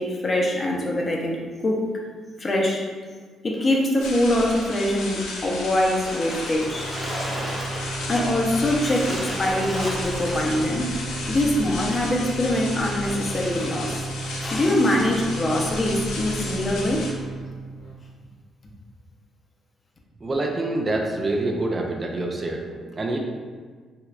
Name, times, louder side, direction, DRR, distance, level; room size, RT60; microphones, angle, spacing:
voice 1, 0.0-1.9 2.4-2.8 3.4-6.9 8.1-10.9 11.3-17.0, left 1 dB, 35° left, -1 dB, 0.6 m, -23 dB
sound 1, 4.0-17.1, left 2 dB, 90° left, 0.5 m, -34 dB
Splash splatter, 5.9-10.7, equal, ahead, 0.8 m, -34 dB
sound 2, 6.6-17.9, right 3 dB, 75° left, 0.9 m, -34 dB
voice 2, 20.2-23.2, right 2 dB, 35° right, 1 dB, 0.4 m, -26 dB
3.3 x 2.9 x 2.4 m, 1.5 s
cardioid pair, 90°, 0 cm